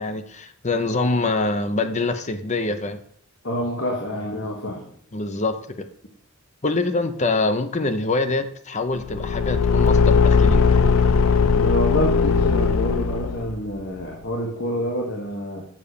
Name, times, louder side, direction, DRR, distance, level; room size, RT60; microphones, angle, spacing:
voice 1, 0.0-3.0 5.1-5.9 6.6-10.7, left 3 dB, 35° left, 10 dB, 0.8 m, -25 dB
voice 2, 3.4-4.9 11.5-15.6, equal, 60° left, -1 dB, 1.6 m, -27 dB
Car / Engine, 9.0-13.6, left 5 dB, 90° left, 0.6 m, -18 dB
7.3 x 6.0 x 6.8 m, 0.65 s
head